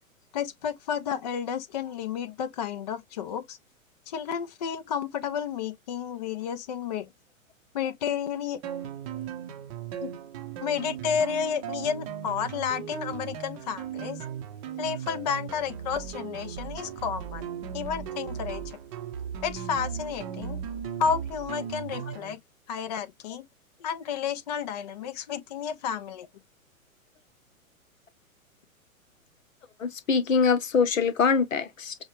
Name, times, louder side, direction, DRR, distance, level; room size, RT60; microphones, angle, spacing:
voice 1, 0.3-3.6 4.1-7.1 7.7-8.6 10.0-10.1 10.6-14.2 14.8-17.4 17.7-18.6 19.4-20.6 21.0-22.4 22.7-23.4 23.8-26.3, left 7 dB, 30° left, 0.4 m, -31 dB
sound 1, 8.6-22.3, right 8 dB, 25° right, 0.7 m, -37 dB
voice 2, 29.8-32.0, left 5 dB, 65° left, 0.9 m, -24 dB
6.2 x 2.2 x 3.1 m
figure-of-eight pair, 110°, 42 cm